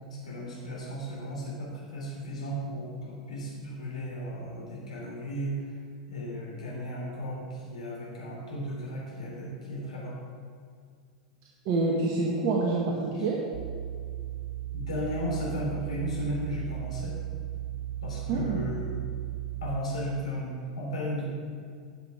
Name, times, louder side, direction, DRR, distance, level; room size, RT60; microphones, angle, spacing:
voice 1, 0.2-5.6 6.1-10.2 13.2-13.3 14.7-17.2 18.0-19.0 19.6-21.3, equal, 80° left, -4 dB, 3.2 m, -35 dB
voice 2, 11.6-13.4 18.3-18.6, right 3 dB, 50° right, -2 dB, 1.5 m, -27 dB
sound 1, 13.5-19.8, right 13 dB, 75° right, 0.5 m, -36 dB
12.5 x 7.5 x 4.8 m, 2.1 s
figure-of-eight pair, 90°, 4 cm